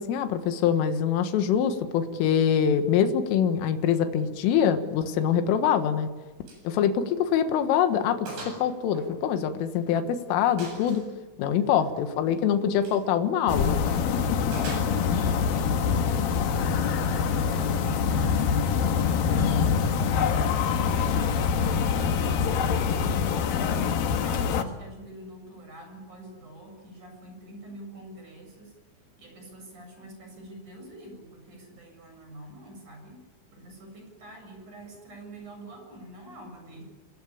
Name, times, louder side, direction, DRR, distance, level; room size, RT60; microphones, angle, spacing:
voice 1, 0.0-6.1 6.7-11.1 11.4-13.8 14.1-14.6, left 8 dB, 90° left, 8 dB, 4.1 m, -24 dB
Gunshot gunfire, 6.5-6.7 7.0-7.1 7.6-7.7 8.3-8.6 8.9-9.9 10.6-11.1 12.7-13.0 14.5-15.3, right 2 dB, 60° right, 10.5 m, -41 dB
voice 2, 11.5-12.6 14.9-20.2 20.7-28.8 29.2-36.8, right 1 dB, 40° right, 3 dB, 8.8 m, -46 dB
sound 1, 13.5-24.6, left 6 dB, 60° left, 2.7 m, -25 dB
27.0 x 21.5 x 8.6 m, 1.2 s
omnidirectional pair, 5.6 m